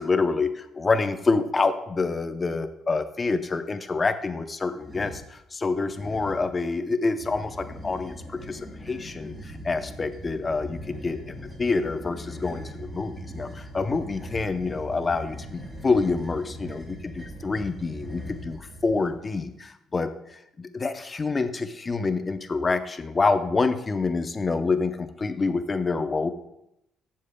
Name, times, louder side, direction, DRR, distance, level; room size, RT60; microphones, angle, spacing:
voice 1, 0.0-8.6 8.9-11.2 11.6-20.1 20.6-26.3, left 3 dB, 25° left, 9 dB, 0.6 m, -27 dB
sound 1, 4.8-5.3 5.9-6.5 7.1-19.1, equal, 15° right, 3.6 m, -40 dB
14.0 x 7.4 x 2.2 m, 0.83 s
cardioid pair, 130°, 0 cm